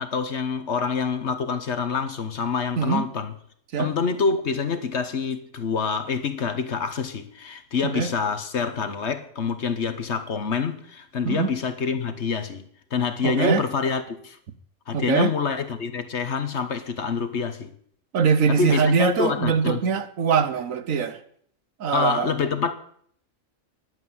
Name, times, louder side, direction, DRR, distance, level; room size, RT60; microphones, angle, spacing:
voice 1, 0.0-3.3 3.8-12.6 12.9-14.4 14.9-17.7 18.5-19.9 21.9-22.7, left 5 dB, 55° left, 1.4 m, -26 dB
voice 2, 2.8-3.1 3.7-3.9 7.8-8.1 11.2-11.5 13.2-13.6 14.9-15.3 18.1-21.2 21.8-22.3, right 6 dB, 75° right, 1.4 m, -22 dB
11.0 x 8.0 x 9.5 m
omnidirectional pair, 1.4 m